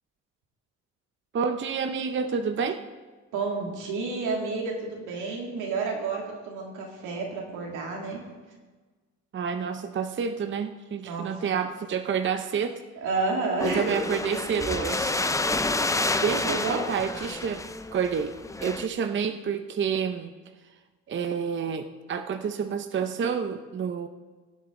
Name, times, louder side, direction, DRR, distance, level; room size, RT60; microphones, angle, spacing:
voice 1, 1.3-2.8 9.3-12.8 13.6-15.2 16.2-17.6 17.9-18.3 18.6-20.3 21.1-24.1, right 7 dB, 40° right, 8 dB, 0.7 m, -29 dB
voice 2, 3.3-8.2 11.0-11.3 13.0-13.9 16.0-16.8, right 4 dB, 90° right, -1 dB, 2.4 m, -30 dB
sound 1, 13.6-18.9, left 2 dB, 10° left, 0.5 m, -29 dB
18.5 x 7.8 x 3.8 m, 1.3 s
cardioid pair, 90°, 30 cm